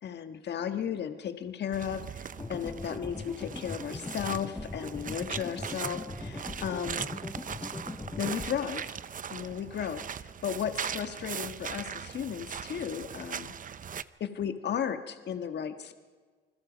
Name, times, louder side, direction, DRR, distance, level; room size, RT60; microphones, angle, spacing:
voice 1, 0.0-7.0 8.2-9.0 9.3-13.5 14.2-15.9, left 8 dB, 60° left, 9 dB, 1.5 m, -35 dB
sound 1, 1.7-14.0, right 7 dB, 45° right, 0.8 m, -40 dB
sound 2, 2.4-8.5, left 3 dB, 15° left, 0.6 m, -40 dB
28.5 x 21.0 x 5.1 m, 1.5 s
cardioid pair, 90°, 20 cm